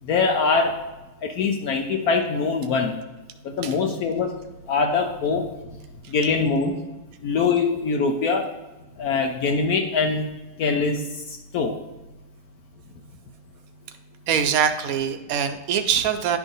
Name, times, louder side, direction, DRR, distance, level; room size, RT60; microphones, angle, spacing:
voice 1, 0.1-0.9 1.2-3.0 3.4-4.3 4.7-5.5 6.1-6.8 7.2-8.5 9.0-10.3 10.6-11.1 11.5-11.8, left 4 dB, 70° left, 3 dB, 1.1 m, -23 dB
voice 2, 14.3-16.4, right 8 dB, 70° right, 8 dB, 1.0 m, -23 dB
10.5 x 3.6 x 3.8 m, 1.1 s
omnidirectional pair, 1.7 m